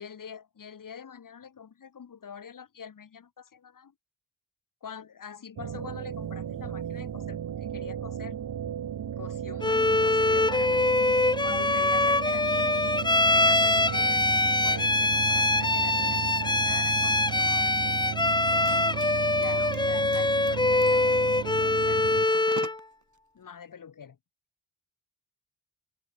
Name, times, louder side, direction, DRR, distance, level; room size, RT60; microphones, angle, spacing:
voice 1, 0.0-3.9 4.8-8.4 9.2-11.0 11.4-14.2 14.6-19.0 19.4-22.7 23.3-24.2, left 7 dB, 65° left, 3.3 m, -45 dB
sound 1, 5.6-22.3, right 9 dB, 75° right, 1.4 m, -35 dB
Bowed string instrument, 9.6-22.8, left 2 dB, 10° left, 0.9 m, -24 dB
sound 2, 18.4-23.0, right 6 dB, 55° right, 7.8 m, -47 dB
open air
wide cardioid pair, 150°, 35 cm